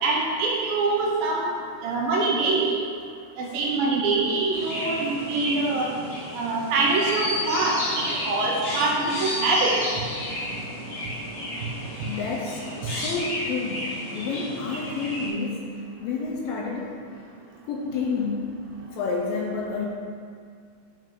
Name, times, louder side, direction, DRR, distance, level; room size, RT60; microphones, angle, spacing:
voice 1, 0.0-1.5 1.8-2.7 3.4-9.8, right 3 dB, 75° right, -2 dB, 2.3 m, -24 dB
Chirp tweet, 4.5-15.3, left 1 dB, 55° left, 0.7 m, -32 dB
voice 2, 12.0-17.2 17.7-19.9, left 4 dB, 75° left, -2 dB, 2.3 m, -30 dB
8.8 x 5.1 x 3.8 m, 2.2 s
omnidirectional pair, 4.5 m